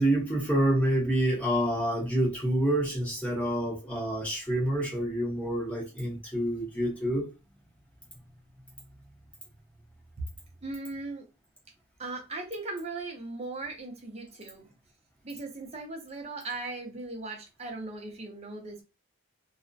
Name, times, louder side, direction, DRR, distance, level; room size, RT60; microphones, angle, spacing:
voice 1, 0.0-7.3, right 1 dB, 5° left, 0.8 m, -27 dB
voice 2, 10.6-11.2 12.0-14.7 15.2-18.8, right 3 dB, 30° right, 0.5 m, -38 dB
2.4 x 2.1 x 2.5 m
head